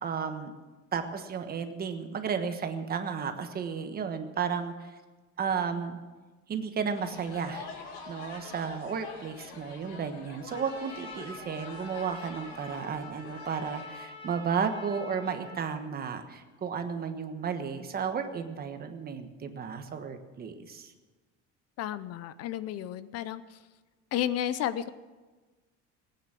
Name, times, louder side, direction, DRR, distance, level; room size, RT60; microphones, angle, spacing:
voice 1, 0.0-0.5 0.9-4.9 5.4-6.0 6.5-20.9, right 6 dB, 30° right, 7 dB, 1.3 m, -33 dB
sound 1, 6.9-13.9, left 4 dB, 90° left, 2.9 m, -46 dB
Trumpet, 10.5-15.7, left 1 dB, 20° left, 5.5 m, -46 dB
voice 2, 21.8-23.6 24.1-24.9, left 11 dB, 55° left, 15 dB, 0.7 m, -32 dB
19.0 x 9.5 x 7.6 m, 1.3 s
cardioid pair, 155°, 30 cm